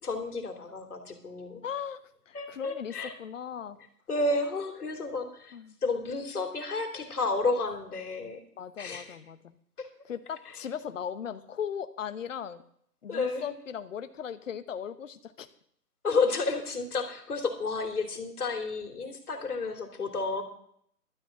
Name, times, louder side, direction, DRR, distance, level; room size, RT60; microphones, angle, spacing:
voice 1, 0.0-1.6 2.3-3.1 4.1-5.6 5.8-8.4 8.8-9.2 9.8-9.9 13.1-13.5 16.0-20.4, left 3 dB, 70° left, 5 dB, 2.9 m, -31 dB
voice 2, 1.6-2.0 2.3-2.9 3.2-3.8 5.5-5.8 8.6-9.6 10.0-12.6 13.0-15.5, left 8 dB, 55° left, 11 dB, 1.0 m, -38 dB
12.5 x 6.3 x 8.7 m, 0.66 s
hypercardioid pair, 160°, 47 cm